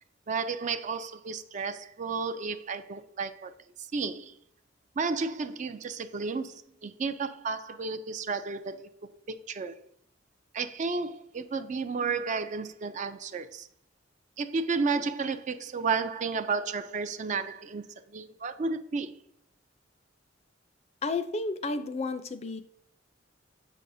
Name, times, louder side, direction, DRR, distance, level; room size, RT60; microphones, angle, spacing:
voice 1, 0.3-3.5 3.9-4.3 5.0-8.9 9.3-9.8 10.5-13.7 14.4-19.1, right 4 dB, 40° right, 0.4 m, -32 dB
voice 2, 21.0-22.6, left 3 dB, 35° left, 0.4 m, -32 dB
7.5 x 6.2 x 2.6 m
head